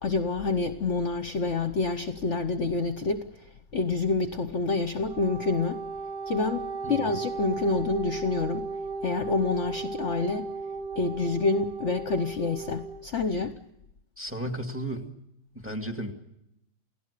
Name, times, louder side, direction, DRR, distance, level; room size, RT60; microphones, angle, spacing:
voice 1, 0.0-5.8 6.3-8.7 9.0-10.5 11.0-13.6, left 3 dB, 50° left, 9 dB, 1.1 m, -28 dB
Wind instrument woodwind instrument, 5.0-13.0, right 4 dB, 45° right, 7.2 m, -36 dB
voice 2, 14.2-15.2 15.6-16.1, right 1 dB, 5° right, 4 dB, 2.2 m, -34 dB
29.5 x 17.0 x 6.7 m, 0.83 s
omnidirectional pair, 1.8 m